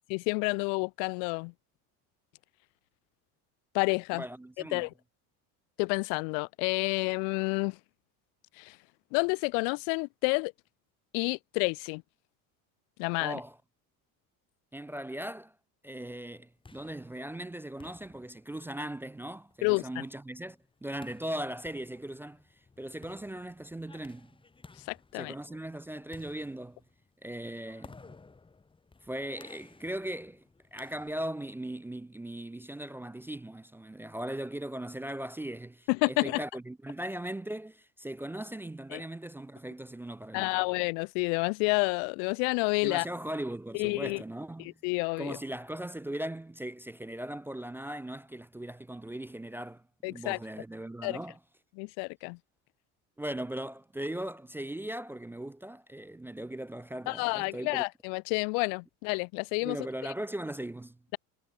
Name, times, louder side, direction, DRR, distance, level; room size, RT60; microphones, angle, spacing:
voice 1, 0.1-1.5 3.7-4.2 4.7-4.9 5.8-7.8 8.6-8.7 9.1-10.5 11.1-12.0 13.0-13.4 19.6-20.0 24.9-25.3 35.9-36.4 38.9-39.0 40.3-43.1 43.7-44.2 44.8-45.4 50.0-50.4 51.0-51.2 51.8-52.4 57.1-59.8, left 40 dB or more, 85° left, 0.6 m, -29 dB
voice 2, 4.1-4.9 13.2-13.6 14.7-15.5 15.8-22.4 22.8-24.3 25.1-26.8 27.2-28.0 29.0-30.4 30.7-40.6 42.8-44.8 45.2-49.8 50.1-51.4 53.2-57.8 59.6-61.0, right 1 dB, 5° right, 0.4 m, -39 dB
sound 1, 16.3-31.5, left 3 dB, 15° left, 2.5 m, -57 dB
cardioid pair, 135°, 38 cm